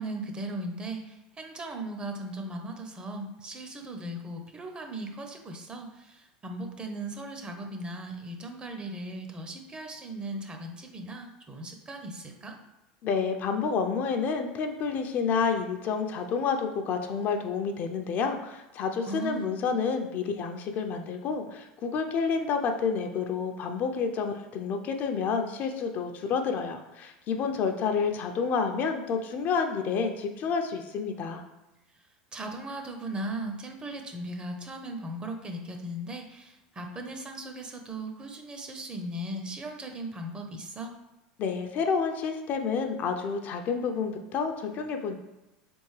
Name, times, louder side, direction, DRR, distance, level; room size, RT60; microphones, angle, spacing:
voice 1, 0.0-12.6 19.1-19.5 32.3-40.9, right 1 dB, 25° right, 4 dB, 0.7 m, -38 dB
voice 2, 13.0-31.4 41.4-45.2, left 5 dB, 50° left, 5 dB, 0.5 m, -29 dB
3.8 x 3.5 x 3.2 m, 0.99 s
hypercardioid pair, 90°, 4 cm